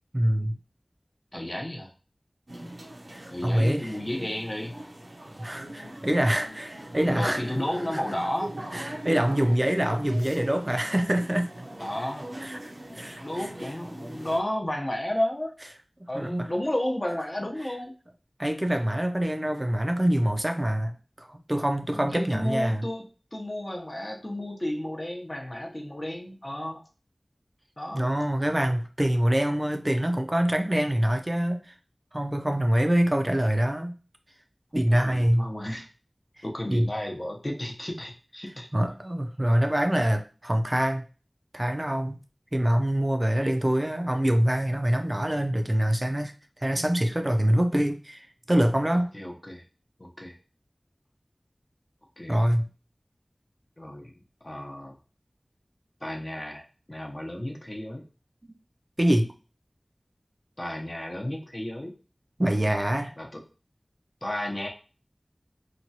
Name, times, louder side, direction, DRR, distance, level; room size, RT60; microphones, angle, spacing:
voice 1, 0.1-0.6 2.6-2.7 3.1-3.9 5.4-7.4 7.9-8.0 8.7-11.5 12.4-13.5 16.1-16.5 18.4-22.8 27.9-31.7 32.1-34.0 34.7-35.5 36.4-36.9 38.7-41.0 41.5-42.2 42.5-46.3 46.6-49.1 52.3-52.7 59.0-59.3 62.4-63.1, right 1 dB, 30° right, 5 dB, 0.4 m, -25 dB
voice 2, 1.3-1.9 3.3-4.7 7.0-8.5 11.8-12.3 13.2-15.5 16.1-17.9 21.9-26.8 27.8-28.1 34.9-35.9 36.4-38.7 49.1-49.6 50.0-50.4 52.2-52.3 53.8-55.0 56.0-58.0 60.6-61.9 63.2-63.4 64.2-64.7, left 1 dB, 35° left, 1 dB, 0.7 m, -32 dB
sound 1, 2.5-14.4, right 1 dB, 90° right, 0.6 m, -41 dB
2.9 x 2.2 x 2.7 m, 0.35 s
wide cardioid pair, 40°, 0 cm